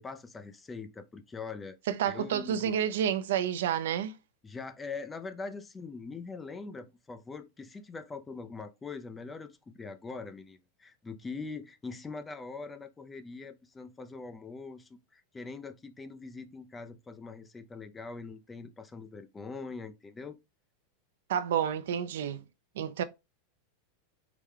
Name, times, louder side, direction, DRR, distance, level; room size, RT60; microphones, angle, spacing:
voice 1, 0.0-1.8 2.1-2.7 4.4-20.4, left 4 dB, 10° left, 0.4 m, -42 dB
voice 2, 1.9-4.2 21.3-22.4 22.8-23.0, right 9 dB, 80° right, 0.5 m, -29 dB
4.7 x 2.2 x 3.6 m
supercardioid pair, 155°, 0 cm